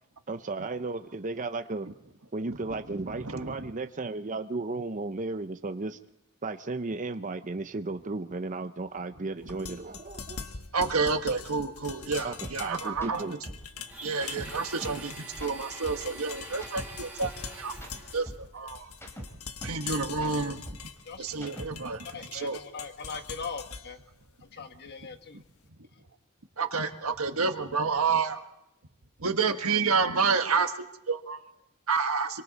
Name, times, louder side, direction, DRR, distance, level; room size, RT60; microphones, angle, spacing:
voice 1, 0.3-1.9 2.3-6.0 6.4-10.5 12.2-13.4, right 3 dB, 35° right, 0.7 m, -34 dB
voice 2, 3.0-3.6 10.7-13.4 14.0-17.7 18.1-18.9 19.6-20.6 21.2-22.0 22.3-22.6 26.6-28.4 29.2-31.4 31.9-32.3, right 4 dB, 75° right, 1.5 m, -29 dB
sound 1, 9.4-25.5, left 6 dB, 85° left, 1.3 m, -44 dB
sound 2, 12.4-12.6 12.9-13.1 13.5-15.0 15.3-17.4 17.7-19.8 20.1-22.0, equal, 10° left, 3.4 m, -43 dB
Domestic sounds home sounds, 13.9-18.3, right 2 dB, 5° right, 4.8 m, -45 dB
voice 3, 22.0-24.0 24.5-25.4, left 5 dB, 50° left, 1.3 m, -40 dB
26.0 x 24.0 x 4.2 m
head